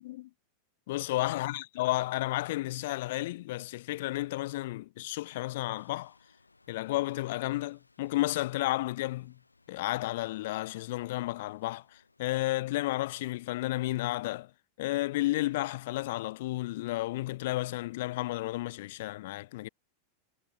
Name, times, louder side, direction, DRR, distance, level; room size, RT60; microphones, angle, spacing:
voice 1, 0.9-6.1 6.7-9.4 9.7-14.5 14.8-19.7, left 17 dB, 55° left, 0.8 m, -32 dB
sound 1, 5.8-12.2, left 3 dB, 80° left, 4.7 m, -66 dB
figure-of-eight pair, 90°, 0 cm